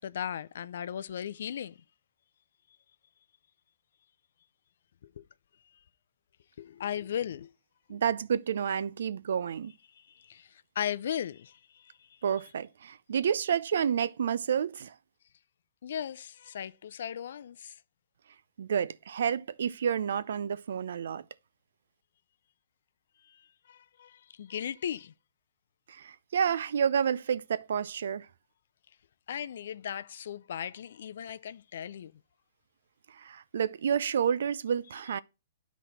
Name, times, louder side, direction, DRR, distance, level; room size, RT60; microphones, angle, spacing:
voice 1, 0.0-1.8 5.0-5.3 6.6-7.5 7.9-8.0 10.0-11.9 15.8-17.7 23.2-25.1 29.3-32.1, left 9 dB, 65° left, 0.4 m, -37 dB
voice 2, 7.9-9.7 12.2-14.9 18.6-21.2 25.9-28.3 33.1-35.2, right 8 dB, 70° right, 0.4 m, -29 dB
10.0 x 4.1 x 4.2 m
hypercardioid pair, 150°, 0 cm